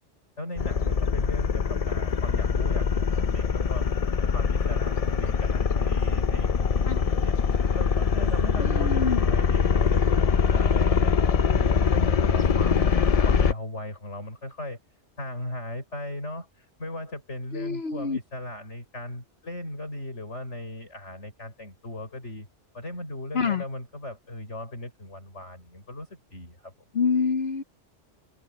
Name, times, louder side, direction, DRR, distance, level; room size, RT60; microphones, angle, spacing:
voice 1, 0.4-3.8 4.3-7.4 7.7-11.1 11.5-13.0 13.2-14.8 15.2-22.5 22.7-26.7, left 1 dB, 80° left, 6.5 m, -37 dB
sound 1, 0.6-13.5, left 6 dB, 40° left, 0.6 m, -23 dB
voice 2, 8.6-9.2 17.5-18.2 23.3-23.6 26.9-27.6, left 5 dB, 60° left, 1.1 m, -26 dB
omnidirectional pair, 1.2 m